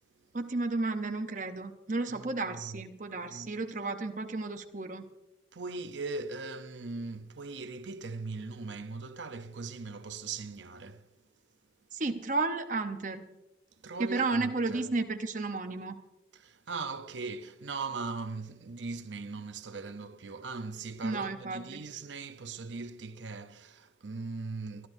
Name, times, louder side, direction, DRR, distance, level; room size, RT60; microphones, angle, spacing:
voice 1, 0.3-5.0 11.9-13.3 14.0-16.0 21.0-21.8, right 3 dB, 45° right, 0.8 m, -33 dB
voice 2, 2.1-2.8 3.2-3.5 5.5-11.1 13.8-14.9 16.3-24.9, right 4 dB, 85° right, 0.7 m, -40 dB
28.0 x 12.5 x 2.7 m
head